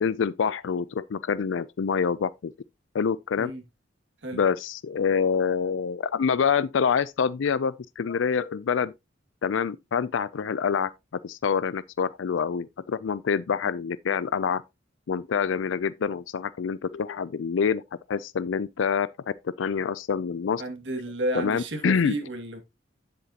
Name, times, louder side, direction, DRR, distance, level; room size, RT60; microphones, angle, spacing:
voice 1, 0.0-2.5 2.9-3.5 4.3-8.9 9.4-10.9 11.2-14.6 15.1-17.8 18.1-19.1 19.4-20.6 21.3-22.1, left 6 dB, 85° left, 0.4 m, -26 dB
voice 2, 20.6-22.6, right 1 dB, 70° right, 2.1 m, -32 dB
10.5 x 7.7 x 2.9 m
head